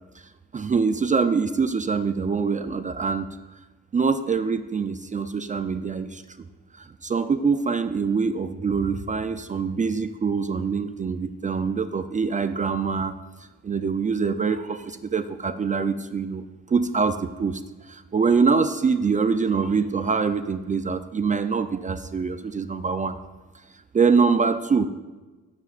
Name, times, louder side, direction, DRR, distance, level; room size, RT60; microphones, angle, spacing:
voice 1, 0.5-3.4 3.9-6.2 6.8-13.2 13.6-17.6 17.9-23.2 23.9-24.9, right 5 dB, 25° right, 10 dB, 0.4 m, -24 dB
18.5 x 6.9 x 2.4 m, 1.2 s
cardioid pair, 90°, 30 cm